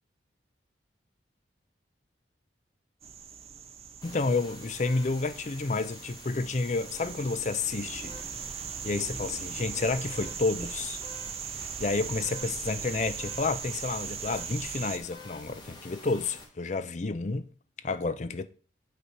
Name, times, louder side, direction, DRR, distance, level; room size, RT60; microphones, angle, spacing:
sound 1, 3.0-15.0, right 7 dB, 35° right, 0.5 m, -39 dB
voice 1, 4.0-8.2 8.8-11.0 11.5-17.5 17.8-18.5, left 3 dB, 40° left, 0.5 m, -30 dB
sound 2, 4.0-16.4, left 2 dB, 25° left, 2.0 m, -48 dB
8.3 x 4.2 x 4.5 m
head